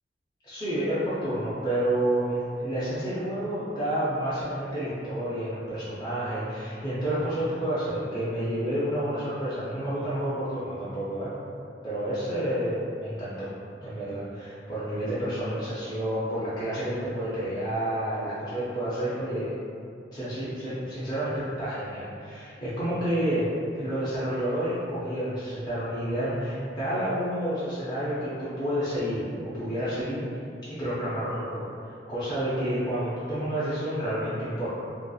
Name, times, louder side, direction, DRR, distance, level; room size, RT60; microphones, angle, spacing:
voice 1, 0.4-11.3 11.8-13.5 13.8-19.5 20.1-30.2 30.7-34.7, right 1 dB, 20° left, -12 dB, 0.5 m, -29 dB
2.8 x 2.8 x 2.3 m, 2.5 s
head